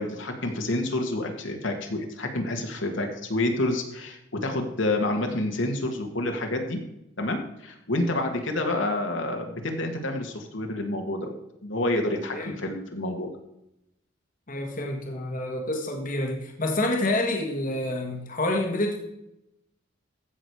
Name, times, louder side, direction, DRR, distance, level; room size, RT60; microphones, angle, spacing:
voice 1, 0.0-6.8 7.2-11.3 11.6-13.3, left 1 dB, 70° left, 3 dB, 1.9 m, -28 dB
voice 2, 14.5-19.0, left 1 dB, 40° left, 2 dB, 1.6 m, -28 dB
15.0 x 6.3 x 4.8 m, 0.83 s
head